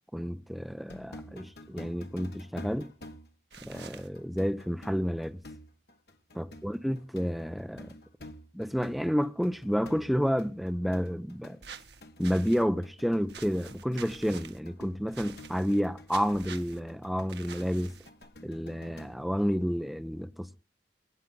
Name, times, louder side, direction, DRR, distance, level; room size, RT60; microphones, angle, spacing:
voice 1, 0.1-2.9 3.6-5.4 6.3-8.0 8.5-11.6 12.2-18.0 18.4-20.6, equal, ahead, 0.6 m, -30 dB
sound 1, 0.9-19.2, left 1 dB, 65° left, 1.3 m, -50 dB
sound 2, 3.5-4.1 11.6-12.6 13.3-14.6 15.1-15.8 16.1-16.8 17.3-18.2, right 6 dB, 75° right, 1.4 m, -47 dB
22.5 x 9.2 x 3.8 m
head